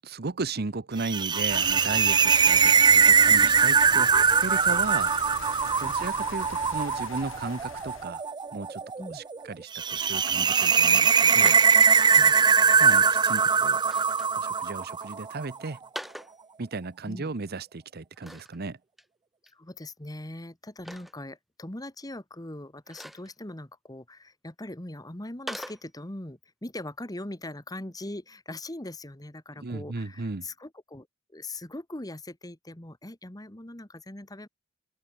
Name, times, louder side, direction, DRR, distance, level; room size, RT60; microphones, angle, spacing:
voice 1, 0.0-5.1 5.8-8.2 8.5-11.6 12.8-13.8 14.3-15.8 16.6-18.8 29.6-30.5, right 3 dB, 50° right, 0.9 m, -35 dB
sound 1, 1.0-15.3, right 6 dB, 20° right, 0.4 m, -21 dB
sound 2, 1.5-8.1, left 4 dB, 70° left, 5.8 m, -41 dB
sound 3, 11.4-11.7 13.7-14.3 15.8-16.4 18.2-18.6 19.0-19.1 19.5-19.6 20.8-21.1 22.9-23.3 25.5-25.8, equal, ahead, 2.2 m, -40 dB
voice 2, 19.4-31.1 31.3-34.5, left 1 dB, 20° left, 1.7 m, -41 dB
open air
head